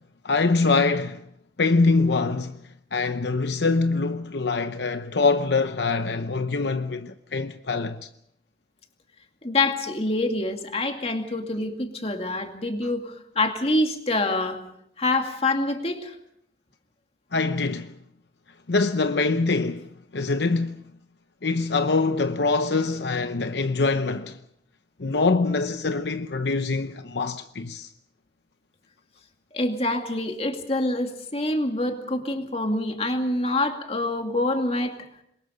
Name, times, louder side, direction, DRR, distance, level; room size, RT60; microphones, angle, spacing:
voice 1, 0.2-1.2 1.6-2.6 2.9-8.1 17.3-17.9 18.7-19.9 20.1-20.8 21.4-24.4 25.0-27.9, left 3 dB, 70° left, 0.8 m, -24 dB
voice 2, 9.4-14.6 15.0-16.2 29.5-35.0, left 2 dB, 35° left, 2.4 m, -26 dB
27.0 x 22.5 x 5.1 m
head